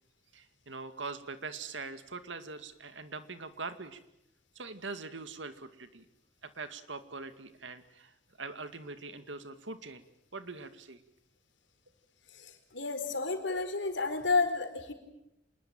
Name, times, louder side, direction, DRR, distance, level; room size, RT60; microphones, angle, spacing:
voice 1, 0.3-4.0 4.6-6.1 6.4-10.0 10.3-11.0, right 4 dB, 80° right, 10 dB, 2.3 m, -43 dB
voice 2, 12.4-14.9, left 3 dB, 75° left, 7 dB, 4.4 m, -31 dB
27.0 x 20.5 x 9.1 m, 0.83 s
head